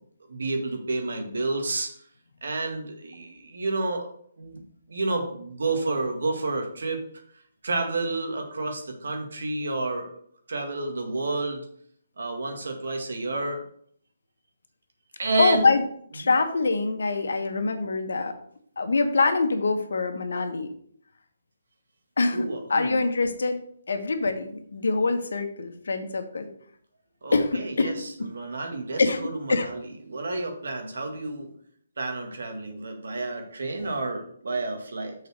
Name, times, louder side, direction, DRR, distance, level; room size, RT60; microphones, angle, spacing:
voice 1, 0.3-1.9 2.4-4.1 4.4-4.6 4.9-7.0 7.6-10.1 10.5-11.7 12.2-13.6 15.2-15.7 16.2-16.3 22.3-23.0 27.2-29.8 30.1-31.5 32.0-35.1, right 2 dB, 80° right, 4 dB, 2.0 m, -30 dB
voice 2, 15.4-15.8 16.1-18.4 18.8-20.7 22.2-23.6 23.9-26.5 27.3-28.3 29.0-29.7, left 3 dB, 80° left, 7 dB, 1.2 m, -25 dB
6.5 x 4.2 x 6.5 m, 0.63 s
hypercardioid pair, 165°, 0 cm